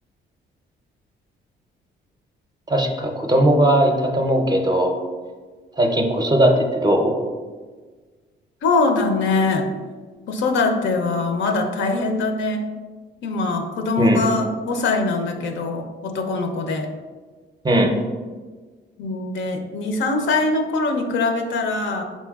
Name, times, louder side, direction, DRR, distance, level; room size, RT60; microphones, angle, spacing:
voice 1, 2.7-5.0 5.8-7.1 14.0-14.2 17.6-18.0, right 1 dB, 20° right, 3 dB, 0.5 m, -18 dB
voice 2, 8.6-9.7 10.3-12.7 13.2-16.9 19.0-22.0, left 3 dB, 70° left, 5 dB, 0.6 m, -22 dB
4.2 x 4.2 x 2.3 m, 1.4 s
cardioid pair, 90°, 20 cm